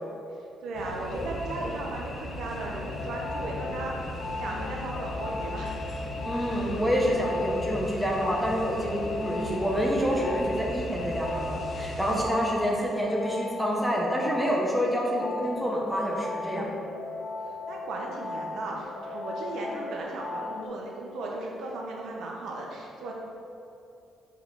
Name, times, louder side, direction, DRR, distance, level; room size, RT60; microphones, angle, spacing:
voice 1, 0.6-5.8 12.4-12.6 17.7-23.1, right 2 dB, 75° right, -1 dB, 1.2 m, -36 dB
sound 1, 0.7-12.2, left 1 dB, 40° left, 1.2 m, -38 dB
sound 2, 2.8-20.7, left 3 dB, 75° left, 1.2 m, -38 dB
voice 2, 6.2-16.7, equal, ahead, -3 dB, 1.1 m, -27 dB
6.6 x 5.8 x 4.3 m, 2.8 s
cardioid pair, 125°, 0 cm